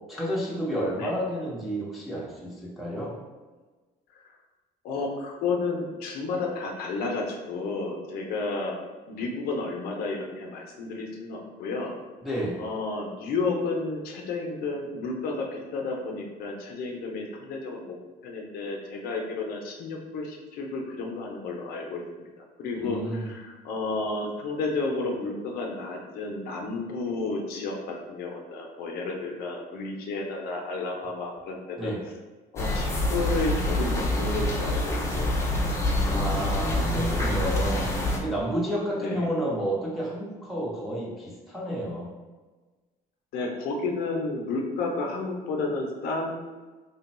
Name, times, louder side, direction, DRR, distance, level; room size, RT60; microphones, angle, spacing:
voice 1, 0.1-3.1 12.2-12.6 22.8-23.3 31.8-32.0 36.1-37.9 38.2-42.1, right 1 dB, ahead, -7 dB, 0.9 m, -30 dB
voice 2, 4.8-8.8 9.1-12.0 12.6-17.9 18.2-31.9 32.5-35.4 39.0-39.3 43.3-46.3, left 3 dB, 70° left, 0 dB, 0.6 m, -32 dB
sound 1, 32.6-38.2, left 1 dB, 15° left, 0.5 m, -26 dB
3.3 x 2.2 x 4.1 m, 1.3 s
cardioid pair, 140°, 16 cm